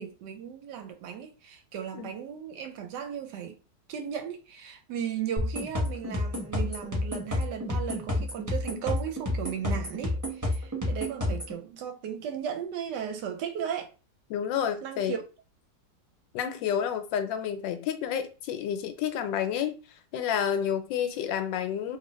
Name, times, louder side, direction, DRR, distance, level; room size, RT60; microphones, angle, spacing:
voice 1, 0.0-3.6 3.9-13.9 14.8-15.2, right 8 dB, 75° right, 1.1 m, -36 dB
sound 1, 5.4-11.6, left 1 dB, 15° right, 0.7 m, -30 dB
voice 2, 14.3-15.2 16.3-19.8 20.1-22.0, left 8 dB, 85° left, 1.3 m, -30 dB
2.8 x 2.7 x 3.0 m
omnidirectional pair, 2.0 m